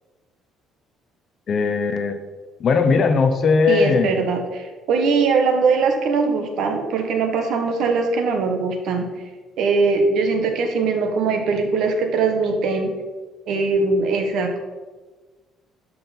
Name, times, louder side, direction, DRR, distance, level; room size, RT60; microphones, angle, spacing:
voice 1, 1.5-2.2 2.6-4.2, left 5 dB, 35° left, 8 dB, 0.8 m, -18 dB
voice 2, 3.7-9.1 9.6-12.9 13.5-14.6, right 4 dB, 60° right, 4 dB, 1.4 m, -21 dB
12.5 x 5.4 x 4.3 m, 1.3 s
cardioid pair, 175°, 0 cm